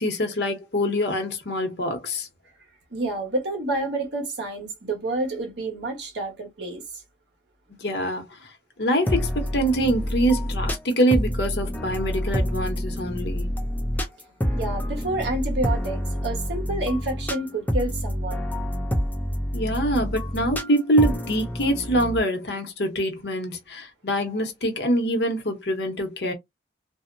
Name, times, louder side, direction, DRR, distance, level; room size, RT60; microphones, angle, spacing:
voice 1, 0.0-2.3 7.8-8.2 8.8-13.5 19.5-26.3, equal, 65° left, 0.9 m, -24 dB
voice 2, 2.9-6.8 14.5-18.5, right 2 dB, 70° right, 1.1 m, -29 dB
sound 1, 9.1-22.2, equal, 10° left, 0.4 m, -27 dB
2.7 x 2.0 x 2.5 m
head